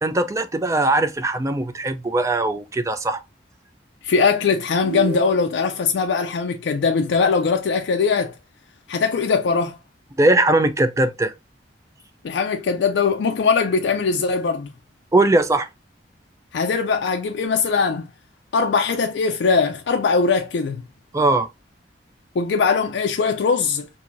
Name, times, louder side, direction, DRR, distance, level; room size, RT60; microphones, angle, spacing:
voice 1, 0.0-3.2 10.2-11.3 15.1-15.7 21.1-21.5, right 2 dB, 15° right, 0.4 m, -20 dB
voice 2, 4.0-8.3 8.9-9.8 12.2-14.7 16.5-18.1 18.5-20.8 22.3-23.9, left 5 dB, 90° left, 0.4 m, -21 dB
sound 1, 4.8-5.9, right 4 dB, 65° right, 0.6 m, -30 dB
4.4 x 2.6 x 2.5 m
head